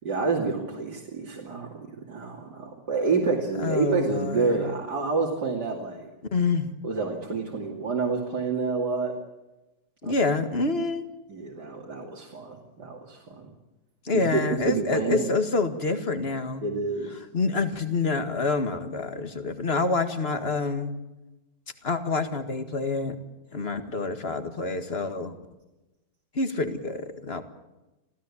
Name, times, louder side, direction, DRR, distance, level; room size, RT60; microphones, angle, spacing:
voice 1, 0.0-6.1 6.8-9.1 10.0-10.1 11.3-13.5 14.1-14.4 14.7-15.3 16.6-17.2, right 4 dB, 65° right, -1 dB, 3.3 m, -28 dB
voice 2, 3.6-4.6 6.3-6.8 10.0-11.0 14.0-16.7 17.3-20.9 21.8-23.2 23.5-25.4 26.3-27.4, left 3 dB, 35° left, 8 dB, 2.0 m, -27 dB
26.5 x 16.5 x 8.6 m, 1.0 s
omnidirectional pair, 1.9 m